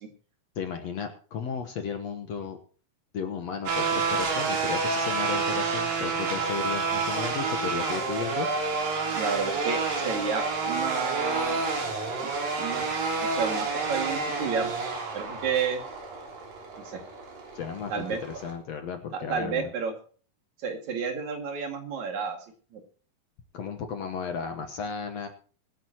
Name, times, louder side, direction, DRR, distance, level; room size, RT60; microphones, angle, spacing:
voice 1, 0.6-2.6 3.1-8.5 17.5-19.7 23.5-25.3, left 6 dB, 60° left, 6 dB, 2.0 m, -34 dB
sound 1, 3.7-18.5, right 4 dB, 80° right, 5.2 m, -29 dB
voice 2, 9.1-11.6 12.2-12.3 12.6-12.8 13.2-14.7 15.1-15.8 16.9-17.0 17.9-18.2 19.1-19.9 20.6-22.4 22.7-22.8, right 5 dB, 60° right, 4 dB, 3.5 m, -31 dB
24.0 x 10.0 x 3.0 m, 0.42 s
omnidirectional pair, 4.0 m